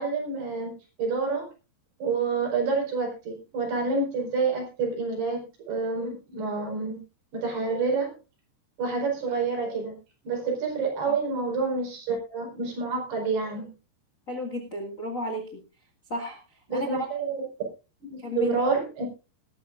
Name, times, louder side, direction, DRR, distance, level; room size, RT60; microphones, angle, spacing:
voice 1, 0.0-1.5 2.0-7.0 7.3-8.2 8.8-10.0 10.2-13.7 16.7-17.4 18.1-19.1, right 4 dB, 65° right, 1 dB, 6.6 m, -28 dB
voice 2, 14.3-15.6 16.1-16.4 16.7-16.9 18.2-18.7, left 1 dB, 35° left, 3 dB, 1.3 m, -33 dB
20.5 x 11.5 x 2.5 m, 0.30 s
omnidirectional pair, 5.0 m